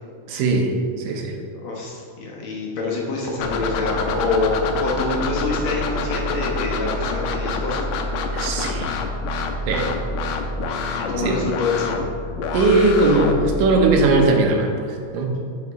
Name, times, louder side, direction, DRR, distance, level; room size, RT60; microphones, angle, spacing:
voice 1, 0.3-1.4 8.3-8.9 9.6-9.9 10.8-11.4 12.5-15.4, right 2 dB, 80° right, 2 dB, 2.6 m, -20 dB
voice 2, 1.6-7.8 8.1-8.2 11.0-12.0, left 3 dB, 60° left, -3 dB, 2.2 m, -26 dB
sound 1, 3.4-14.2, left 3 dB, 90° left, 2.4 m, -27 dB
9.6 x 7.1 x 4.1 m, 2.3 s
omnidirectional pair, 3.9 m